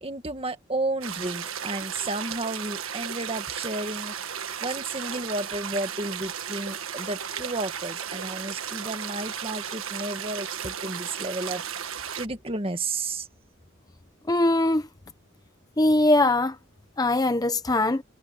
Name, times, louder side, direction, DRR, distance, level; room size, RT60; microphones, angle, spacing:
voice 1, 0.0-4.1 4.6-13.3, right 2 dB, 25° right, 1.9 m, -32 dB
sound 1, 1.0-12.3, right 8 dB, 80° right, 1.5 m, -35 dB
voice 2, 14.3-14.8 15.8-16.6 17.0-18.0, left 2 dB, 20° left, 0.6 m, -21 dB
head